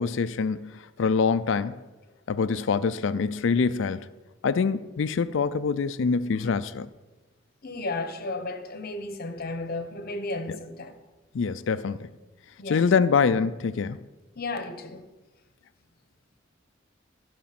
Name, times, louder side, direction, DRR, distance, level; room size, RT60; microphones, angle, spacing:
voice 1, 0.0-1.8 2.3-4.1 4.4-6.9 11.3-12.1 12.7-14.0, left 5 dB, 70° left, 0.4 m, -25 dB
voice 2, 7.6-11.0 12.6-12.8 14.4-15.1, left 2 dB, 50° left, 1.0 m, -33 dB
15.0 x 5.1 x 6.0 m
head